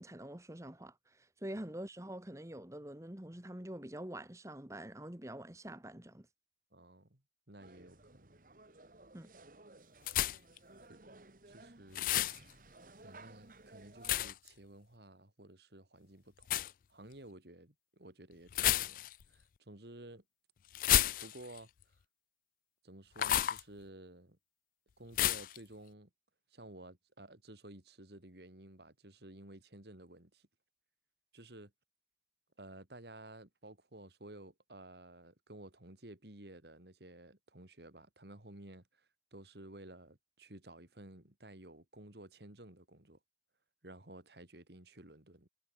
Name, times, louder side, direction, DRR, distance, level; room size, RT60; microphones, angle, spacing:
voice 1, 0.0-6.3 9.1-9.3, right 1 dB, 15° right, 1.5 m, -46 dB
voice 2, 6.7-7.2 7.5-8.4 10.9-11.0 11.4-12.2 13.0-20.2 20.9-21.7 22.8-24.4 25.0-26.1 26.5-30.5 31.3-31.7 32.6-43.2 43.8-45.5, right 1 dB, 70° right, 3.1 m, -54 dB
sound 1, 7.6-14.3, right 2 dB, 50° right, 2.1 m, -57 dB
sound 2, 10.1-10.6 11.9-12.4 14.0-14.5 16.4-16.7 18.5-19.2 20.7-21.6 23.2-23.6 25.2-25.6, left 13 dB, 50° left, 0.3 m, -31 dB
head